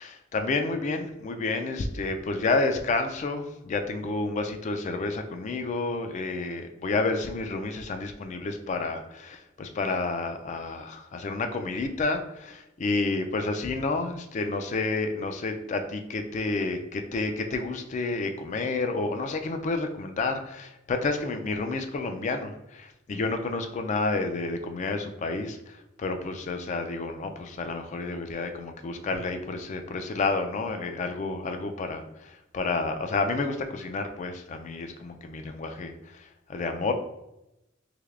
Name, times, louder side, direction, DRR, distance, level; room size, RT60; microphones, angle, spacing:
voice 1, 0.3-36.9, left 3 dB, 35° left, 6 dB, 0.3 m, -30 dB
3.3 x 3.1 x 2.4 m, 0.90 s
head